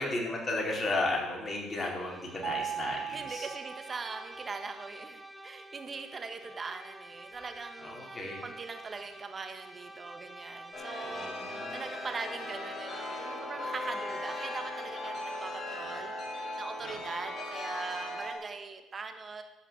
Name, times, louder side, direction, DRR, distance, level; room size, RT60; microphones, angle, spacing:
voice 1, 0.0-3.5 7.8-8.4 11.0-11.8 16.8-17.0, left 2 dB, 30° left, -1 dB, 4.5 m, -34 dB
Bowed string instrument, 1.7-15.6, right 1 dB, 5° right, 1.2 m, -49 dB
Mallet percussion, 2.4-4.4, right 9 dB, 50° right, 1.0 m, -38 dB
voice 2, 3.1-19.4, right 4 dB, 35° right, 6 dB, 1.8 m, -41 dB
Chime, 10.7-18.3, left 1 dB, 50° left, 5.0 m, -38 dB
13.0 x 5.8 x 8.6 m, 1.1 s
supercardioid pair, 75°, 0 cm